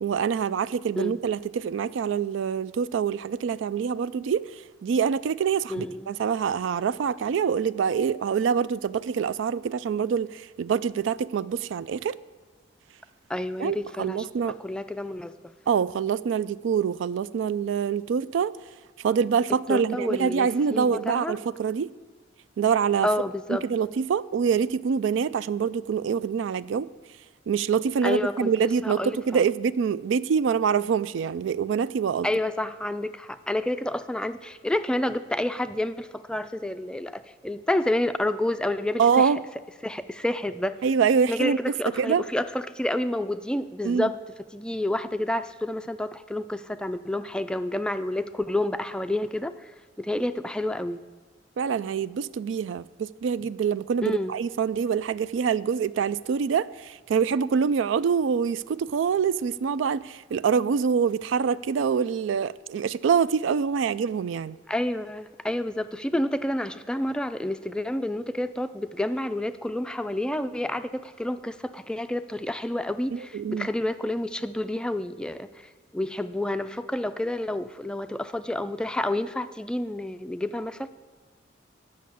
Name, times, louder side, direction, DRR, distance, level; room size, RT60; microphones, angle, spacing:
voice 1, 0.0-4.4 4.8-12.2 13.6-14.6 15.7-18.5 19.0-21.9 22.6-23.1 23.5-26.9 27.5-32.3 39.0-39.4 40.8-41.6 42.0-42.2 43.8-44.1 51.6-64.6 73.1-73.7, right 6 dB, 75° right, 0.3 m, -25 dB
voice 2, 5.7-6.1 13.3-15.3 19.7-21.4 23.0-23.6 28.0-29.4 32.2-39.3 39.8-40.8 41.3-44.2 44.5-49.7 50.0-51.0 54.0-54.4 64.7-75.5 75.9-80.9, left 1 dB, 5° left, 0.3 m, -29 dB
10.5 x 6.4 x 8.4 m
head